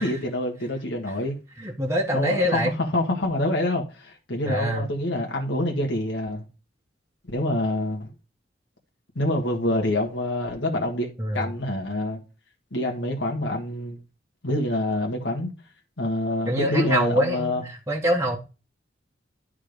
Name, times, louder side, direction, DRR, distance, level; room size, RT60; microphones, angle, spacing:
voice 1, 0.0-1.3 2.1-6.4 7.3-8.1 9.2-12.2 12.7-14.0 14.4-15.5 16.0-17.6, left 1 dB, 80° left, 1.6 m, -26 dB
voice 2, 1.6-3.3 4.5-4.9 11.2-11.5 16.5-18.4, equal, 15° right, 1.2 m, -25 dB
11.5 x 3.8 x 5.1 m
head